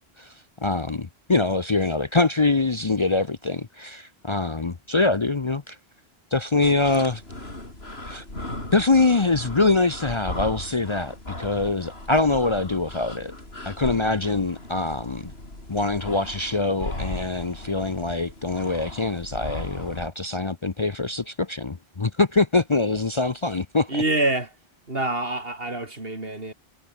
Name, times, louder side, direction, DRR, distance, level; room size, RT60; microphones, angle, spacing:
voice 1, 0.6-5.8 6.3-7.2 8.1-8.2 8.7-13.3 13.6-15.3 15.7-24.0, left 3 dB, 30° left, 0.8 m, -24 dB
sound 1, 6.6-20.1, left 1 dB, 75° left, 6.3 m, -37 dB
voice 2, 23.9-24.5 24.9-26.5, right 2 dB, 65° right, 4.4 m, -26 dB
omnidirectional pair, 1.1 m